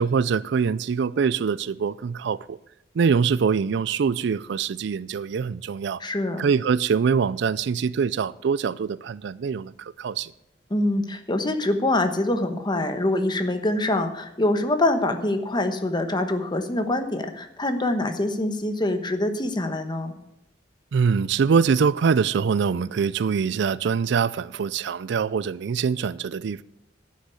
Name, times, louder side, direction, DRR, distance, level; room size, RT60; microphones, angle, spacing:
voice 1, 0.0-2.6 2.9-6.0 6.4-10.3 20.9-26.6, right 6 dB, 70° right, 0.4 m, -24 dB
voice 2, 6.0-6.4 10.7-20.2, left 1 dB, 25° left, 1.1 m, -25 dB
11.5 x 6.6 x 8.4 m
head